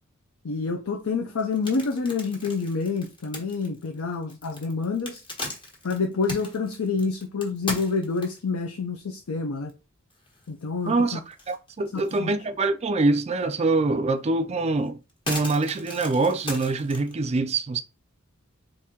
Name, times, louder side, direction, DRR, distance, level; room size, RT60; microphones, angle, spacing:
voice 1, 0.4-5.2 5.8-9.7 10.5-11.2 11.9-12.3, left 4 dB, 70° left, 0.5 m, -28 dB
sound 1, 1.4-8.6 9.2-9.3 9.7-9.8 10.1-10.9 11.3-12.3 12.6-12.7 14.1-14.2 14.6-17.1, left 2 dB, 25° left, 1.2 m, -37 dB
voice 2, 10.9-11.2 11.5-15.0 15.3-17.8, right 3 dB, 30° right, 0.3 m, -24 dB
4.2 x 2.6 x 3.6 m
head